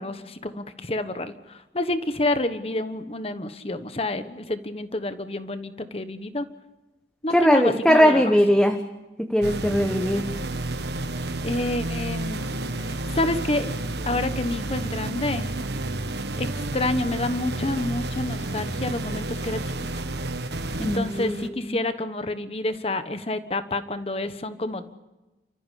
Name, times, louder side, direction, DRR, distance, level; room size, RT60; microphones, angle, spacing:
voice 1, 0.0-6.5 7.2-8.2 11.4-12.5 12.9-13.8 14.0-15.5 16.4-19.6 20.8-24.9, left 2 dB, 35° left, 10 dB, 1.2 m, -28 dB
voice 2, 7.3-8.8 9.2-10.3 20.8-21.9, equal, 5° left, 4 dB, 1.1 m, -20 dB
sound 1, 9.4-21.5, right 2 dB, 75° right, 1.3 m, -30 dB
30.0 x 14.0 x 8.4 m, 1.1 s
head